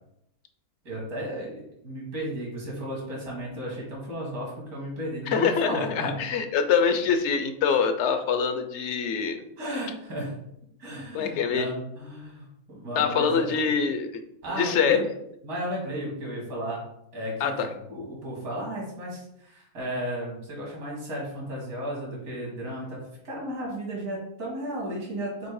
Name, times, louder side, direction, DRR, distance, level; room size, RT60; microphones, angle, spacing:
voice 1, 0.8-6.2 9.6-10.3 10.8-13.5 14.4-15.1 15.4-16.8 17.1-17.5 17.9-25.5, equal, 80° right, -3 dB, 2.6 m, -34 dB
voice 2, 5.3-9.4 11.1-11.7 13.0-14.1 14.6-15.0 17.4-17.7, left 6 dB, 60° left, 8 dB, 0.8 m, -24 dB
7.0 x 2.8 x 4.7 m, 0.80 s
omnidirectional pair, 1.6 m